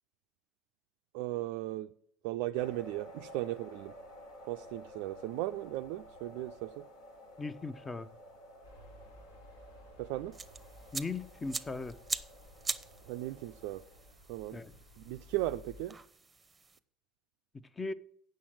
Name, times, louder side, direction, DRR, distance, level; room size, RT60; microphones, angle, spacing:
voice 1, 1.1-1.9 2.2-3.9 4.5-6.8 10.0-10.3 13.1-13.8 14.3-14.6 15.0-16.0, right 16 dB, 70° right, 0.3 m, -36 dB
sound 1, 2.5-14.1, equal, 70° left, 2.4 m, -53 dB
voice 2, 7.4-8.1 10.9-12.0 14.5-14.7 17.8-17.9, left 3 dB, 25° left, 0.7 m, -38 dB
sound 2, 8.6-15.8, left 1 dB, 90° left, 4.1 m, -56 dB
sound 3, 10.3-16.8, right 4 dB, 25° right, 0.7 m, -43 dB
8.5 x 6.5 x 7.5 m
hypercardioid pair, 65°, 0 cm